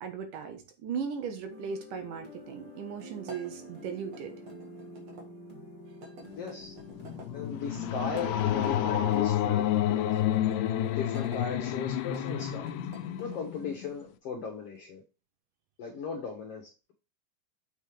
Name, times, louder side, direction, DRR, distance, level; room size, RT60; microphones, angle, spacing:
voice 1, 0.0-4.3, right 6 dB, 80° right, 2.7 m, -37 dB
sound 1, 1.5-9.3, equal, 15° right, 2.0 m, -48 dB
sound 2, 3.2-5.3 6.0-7.3 8.0-9.2 10.1-11.4 12.0-13.4, right 1 dB, 55° right, 2.7 m, -50 dB
voice 2, 6.4-6.7 7.3-10.3 10.9-12.8 13.2-15.0 15.8-16.9, left 5 dB, 60° left, 1.7 m, -38 dB
sound 3, 6.7-14.0, left 11 dB, 85° left, 2.2 m, -29 dB
7.4 x 5.7 x 3.3 m
omnidirectional pair, 3.7 m